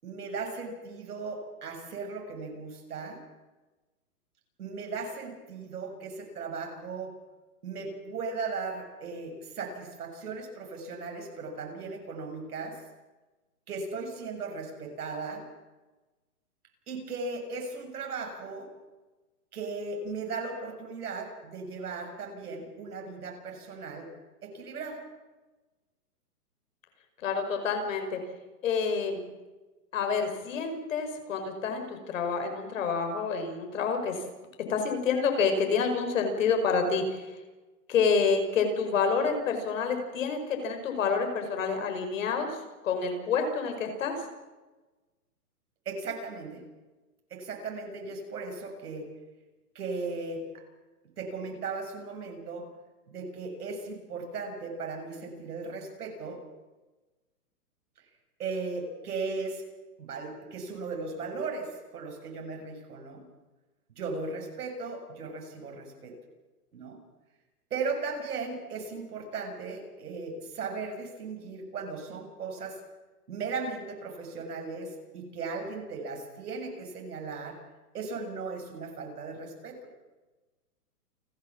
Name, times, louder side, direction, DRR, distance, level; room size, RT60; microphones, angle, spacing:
voice 1, 0.0-3.2 4.6-7.1 7.6-12.8 13.7-15.4 16.9-18.7 19.5-24.1 24.4-25.0 45.9-46.6 47.3-49.1 49.8-50.6 51.2-52.7 53.1-56.4 58.4-59.6 60.0-63.3 64.0-66.1 66.7-67.0 67.7-72.8 73.3-77.6 77.9-79.8, right 4 dB, 70° right, 3 dB, 7.0 m, -37 dB
voice 2, 27.2-28.2 28.6-29.2 29.9-34.2 34.7-37.3 37.9-42.6 42.8-44.2, left 5 dB, 55° left, 5 dB, 5.3 m, -28 dB
29.0 x 12.5 x 7.4 m, 1.1 s
hypercardioid pair, 165°, 47 cm